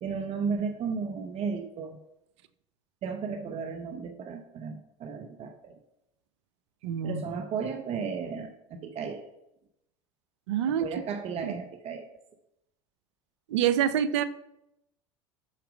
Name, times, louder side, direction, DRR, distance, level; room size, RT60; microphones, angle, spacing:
voice 1, 0.0-2.0 3.0-5.7 7.0-9.2 10.8-12.0, right 5 dB, 45° right, 6 dB, 0.8 m, -34 dB
voice 2, 6.8-7.2 10.5-10.9 11.4-11.6 13.5-14.2, right 9 dB, 75° right, 14 dB, 0.5 m, -26 dB
6.5 x 4.8 x 5.0 m, 0.83 s
hypercardioid pair, 85°, 15 cm